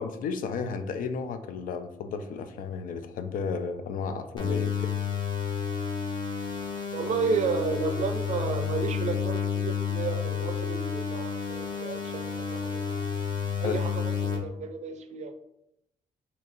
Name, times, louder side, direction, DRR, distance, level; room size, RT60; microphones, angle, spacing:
voice 1, 0.0-5.0 13.6-13.8, left 5 dB, 80° left, 9 dB, 0.4 m, -33 dB
sound 1, 4.4-14.4, left 6 dB, 35° left, 0.6 m, -30 dB
voice 2, 6.9-12.8 13.6-15.3, right 5 dB, 55° right, 8 dB, 0.4 m, -32 dB
2.7 x 2.5 x 4.1 m, 0.83 s
wide cardioid pair, 160°, 14 cm